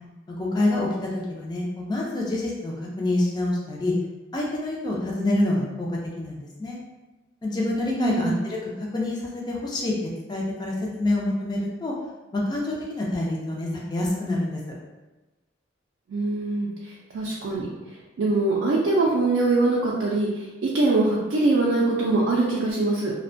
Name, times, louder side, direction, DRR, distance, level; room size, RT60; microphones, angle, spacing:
voice 1, 0.4-3.9 4.3-5.9 6.2-6.8 7.4-9.9 10.3-11.9 12.3-14.6, left 1 dB, 20° left, -3 dB, 0.3 m, -27 dB
voice 2, 8.0-8.3 16.1-16.7 17.1-17.7 18.2-20.3 20.7-23.1, right 2 dB, 70° right, -5 dB, 0.4 m, -22 dB
2.4 x 2.1 x 2.5 m, 1.1 s
head